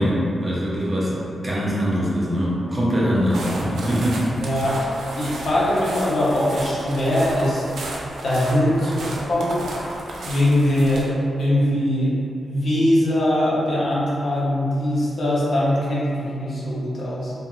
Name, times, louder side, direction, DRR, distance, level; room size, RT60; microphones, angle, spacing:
voice 1, 0.0-4.4, equal, 15° right, -7 dB, 0.5 m, -22 dB
sound 1, 3.2-11.0, right 1 dB, 85° right, 0.4 m, -33 dB
voice 2, 4.4-4.7 5.1-7.7 8.2-9.6 10.2-11.1 11.4-12.1 12.4-17.3, left 1 dB, 55° left, -7 dB, 0.6 m, -21 dB
2.4 x 2.3 x 2.9 m, 2.6 s
wide cardioid pair, 160°, 0 cm